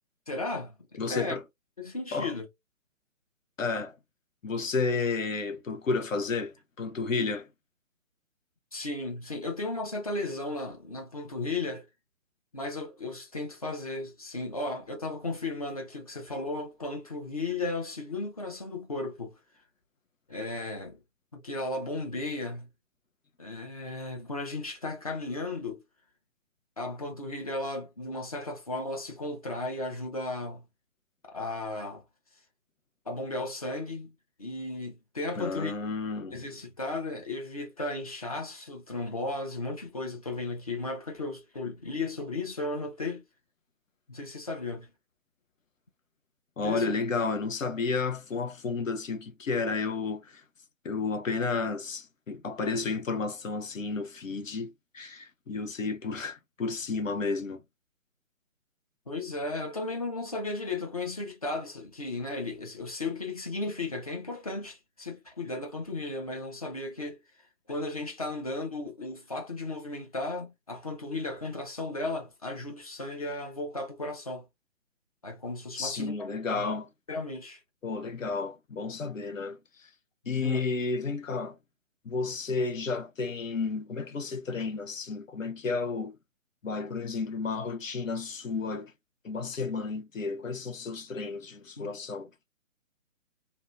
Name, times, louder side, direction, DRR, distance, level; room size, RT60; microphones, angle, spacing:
voice 1, 0.3-1.4 1.8-2.5 8.7-11.9 12.5-19.4 20.3-21.0 21.3-22.7 23.4-25.8 26.8-30.6 31.3-32.0 33.1-35.7 36.3-43.2 44.1-44.9 46.6-46.9 59.1-67.2 67.7-74.4 75.2-76.3 76.5-76.6 77.1-77.6 80.4-80.6 91.8-91.9, left 2 dB, 30° left, 0.5 m, -35 dB
voice 2, 1.0-1.4 2.1-2.3 3.6-4.0 4.4-7.5 35.4-36.4 46.6-50.4 50.8-57.6 75.7-76.9 77.8-79.9 80.3-81.6 82.0-86.1 86.6-88.9 89.2-92.3, left 4 dB, 75° left, 0.7 m, -32 dB
2.7 x 2.2 x 2.4 m
figure-of-eight pair, 140°, 40 cm